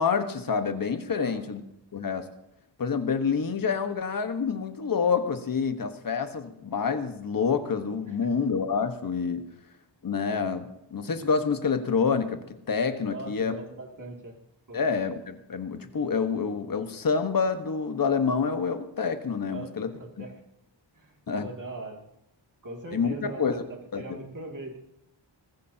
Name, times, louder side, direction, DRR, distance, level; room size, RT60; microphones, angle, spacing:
voice 1, 0.0-1.6 1.9-2.3 2.8-9.4 10.0-13.5 14.7-19.9 20.2-20.3 21.3-21.5 22.9-23.6 23.9-24.0, left 5 dB, 45° left, 8 dB, 1.3 m, -27 dB
voice 2, 1.1-1.5 8.1-8.2 13.1-14.3 14.7-14.8 19.5-19.7 20.0-20.3 21.0-21.1 21.4-22.0 22.6-24.8, right 2 dB, 40° right, 1 dB, 2.5 m, -40 dB
20.0 x 14.5 x 2.9 m, 0.83 s
wide cardioid pair, 105°, 46 cm